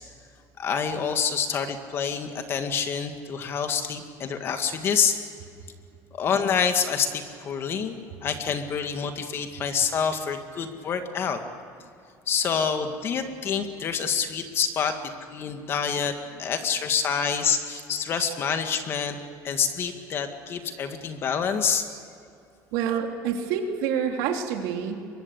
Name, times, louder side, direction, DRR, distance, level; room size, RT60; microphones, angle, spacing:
voice 1, 0.6-5.2 6.1-7.9 8.2-11.4 12.3-19.2 19.4-21.9, left 6 dB, 35° left, 7 dB, 2.0 m, -27 dB
voice 2, 22.7-25.0, right 7 dB, 85° right, 3 dB, 3.4 m, -28 dB
24.0 x 23.0 x 8.3 m, 2.5 s
cardioid pair, 165°, 7 cm